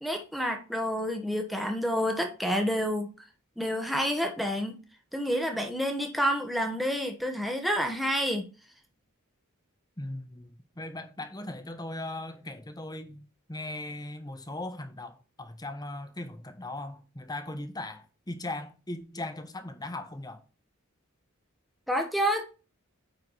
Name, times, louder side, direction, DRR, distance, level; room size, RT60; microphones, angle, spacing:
voice 1, 0.0-3.1 3.6-4.8 5.1-8.4 21.9-22.4, equal, ahead, 1.1 m, -29 dB
voice 2, 10.0-20.4, left 2 dB, 20° left, 1.2 m, -39 dB
9.5 x 4.7 x 4.0 m
head